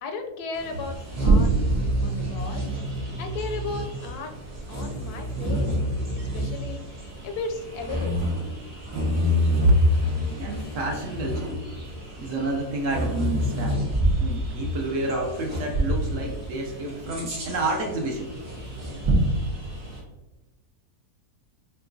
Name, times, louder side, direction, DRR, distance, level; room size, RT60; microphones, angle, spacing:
voice 1, 0.0-1.5 2.0-2.7 3.2-4.4 4.7-5.7 6.1-8.2, left 3 dB, 75° left, 5 dB, 1.1 m, -35 dB
Bird vocalization bird call bird song, 0.5-20.0, right 1 dB, 80° right, 2.1 m, -27 dB
voice 2, 10.3-11.6 12.2-13.8 14.2-18.3, right 1 dB, 65° right, 1 dB, 0.9 m, -27 dB
6.6 x 2.8 x 2.6 m, 1.1 s
omnidirectional pair, 1.7 m